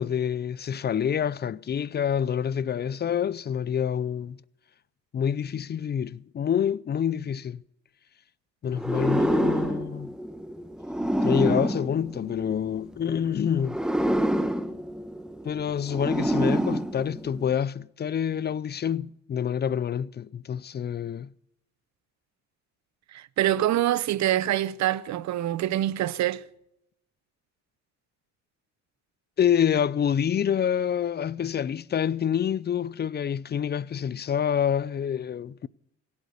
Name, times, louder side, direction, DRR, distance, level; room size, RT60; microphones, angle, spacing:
voice 1, 0.0-4.4 5.1-7.6 8.6-10.1 11.2-13.8 15.4-21.3 29.4-35.7, left 8 dB, 35° left, 0.5 m, -27 dB
sound 1, 8.7-12.9 13.6-17.6, equal, ahead, 1.0 m, -27 dB
voice 2, 23.1-26.4, right 13 dB, 65° right, 0.7 m, -25 dB
17.0 x 11.5 x 6.8 m
cardioid pair, 90°, 30 cm